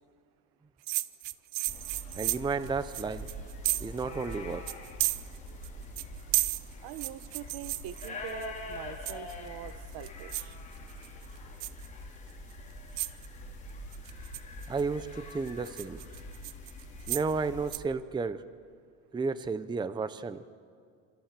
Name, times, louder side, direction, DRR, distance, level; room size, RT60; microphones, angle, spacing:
sound 1, 0.9-4.0 4.3-4.4 4.7-5.7 6.0-8.5 9.1-9.5 9.9-10.5 10.9-11.3 11.6-11.9 12.5-12.6 13.0-13.3 13.9-14.8 15.3-17.3 17.7-17.8, right 20 dB, 90° right, 0.9 m, -33 dB
sound 2, 1.7-17.7, left 1 dB, 20° left, 5.0 m, -44 dB
voice 1, 2.1-3.3 3.8-4.7 14.7-16.0 17.1-18.5 19.1-20.4, right 4 dB, 10° right, 14 dB, 0.7 m, -32 dB
voice 2, 6.8-10.5, right 12 dB, 60° right, 14 dB, 1.3 m, -43 dB
28.5 x 27.5 x 7.6 m, 2.3 s
cardioid pair, 135°, 41 cm